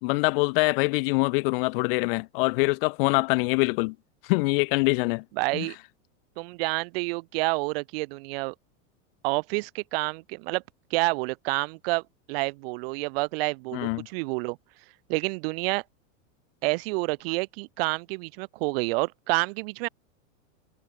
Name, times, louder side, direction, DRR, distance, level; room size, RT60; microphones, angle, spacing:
voice 1, 0.0-3.9 4.2-5.2 5.5-5.7 13.7-14.1, left 28 dB, 40° left, 2.2 m, -24 dB
voice 2, 5.4-5.8 6.4-8.5 9.2-10.6 10.9-12.0 12.3-14.6 15.1-15.8 16.6-19.9, right 26 dB, 45° right, 4.4 m, -28 dB
supercardioid pair, 165°, 41 cm